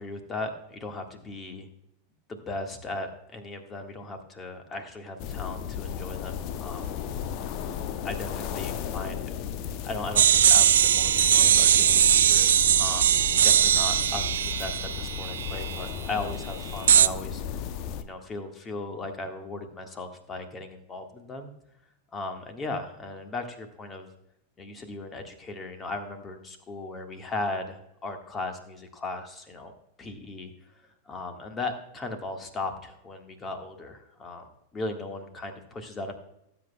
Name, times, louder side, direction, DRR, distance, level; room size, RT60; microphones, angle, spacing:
voice 1, 0.0-1.7 2.3-6.9 8.0-9.4 9.8-13.2 13.4-17.4 18.0-21.5 22.1-24.1 24.6-29.7 30.0-30.5 31.1-34.5 34.7-36.1, left 2 dB, 20° left, 5 dB, 1.7 m, -37 dB
sound 1, 5.2-18.0, left 8 dB, 40° left, 0.8 m, -35 dB
sound 2, 10.2-15.9 16.9-17.1, right 10 dB, 60° right, 0.4 m, -20 dB
18.5 x 8.3 x 2.3 m, 0.81 s
figure-of-eight pair, 90°, 0 cm